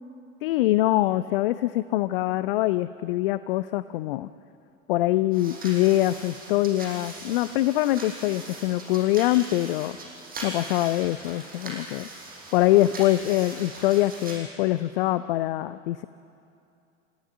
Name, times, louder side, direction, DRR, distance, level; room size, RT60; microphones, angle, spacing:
voice 1, 0.4-4.3 4.9-10.0 10.4-12.1 12.5-16.0, left 15 dB, 45° left, 15 dB, 0.6 m, -24 dB
sound 1, 5.3-14.4, right 2 dB, 20° right, 5.6 m, -40 dB
29.5 x 14.5 x 9.0 m, 2.6 s
figure-of-eight pair, 90°, 41 cm